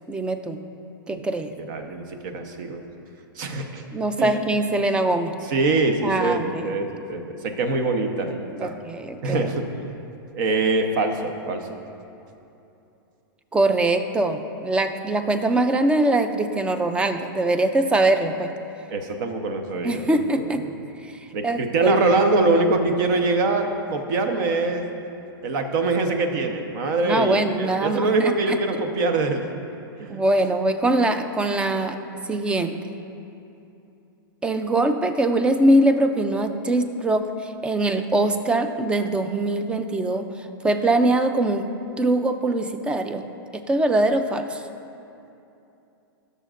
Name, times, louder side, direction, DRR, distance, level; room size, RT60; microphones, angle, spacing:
voice 1, 0.1-0.6 1.1-1.5 3.9-5.4 6.0-6.8 8.6-9.5 13.5-18.5 19.8-20.6 21.0-21.1 21.4-21.9 27.0-28.6 30.1-32.0 32.3-32.8 34.4-40.3 40.6-41.7 42.0-43.3 43.5-44.6, right 2 dB, 10° right, 8 dB, 0.4 m, -22 dB
voice 2, 1.7-2.8 3.4-3.8 4.2-4.4 5.5-8.7 9.2-9.8 10.3-11.7 18.9-20.7 21.3-24.8 25.4-29.4 30.0-30.2, right 3 dB, 60° right, 5 dB, 0.9 m, -24 dB
16.5 x 6.6 x 2.5 m, 2.8 s
hypercardioid pair, 140°, 12 cm